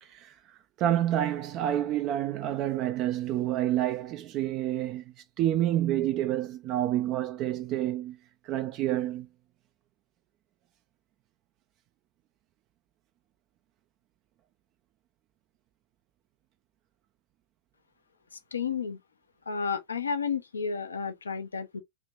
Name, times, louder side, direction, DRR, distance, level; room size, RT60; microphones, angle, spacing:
voice 1, 0.0-0.3 0.8-5.0 5.4-8.2 8.4-9.3, right 12 dB, 40° right, 0.3 m, -28 dB
voice 2, 18.3-19.0 19.5-21.8, left 6 dB, 75° left, 0.6 m, -32 dB
3.2 x 2.9 x 2.6 m
figure-of-eight pair, 90°, 0 cm